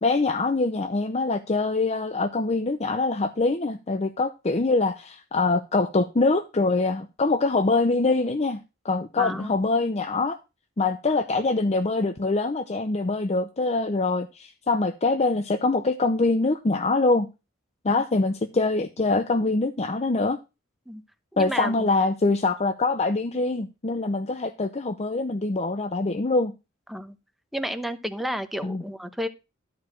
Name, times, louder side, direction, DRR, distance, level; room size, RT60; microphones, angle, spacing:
voice 1, 0.0-10.4 10.8-17.3 17.8-20.4 21.4-26.5 28.6-28.8, left 3 dB, 35° left, 0.6 m, -24 dB
voice 2, 9.2-9.5 17.9-18.0 20.9-21.0 21.3-21.9 26.9-27.2 27.5-29.3, equal, ahead, 0.9 m, -31 dB
12.5 x 4.8 x 6.2 m
head